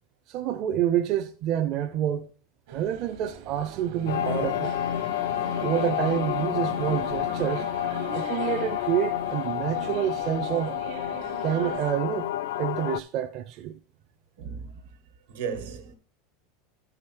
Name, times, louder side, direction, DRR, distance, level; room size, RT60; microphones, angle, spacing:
voice 1, 0.3-2.3 2.7-4.8 5.6-7.7 8.1-10.7 11.4-12.3 12.6-13.8, right 10 dB, 50° right, 0.5 m, -28 dB
sound 1, 2.7-11.9, right 8 dB, 70° right, 1.0 m, -41 dB
sound 2, 4.0-13.0, left 12 dB, 80° left, 0.4 m, -29 dB
voice 2, 14.4-14.9 15.3-15.9, right 6 dB, 90° right, 1.4 m, -35 dB
11.5 x 4.9 x 4.5 m
supercardioid pair, 125°, 0 cm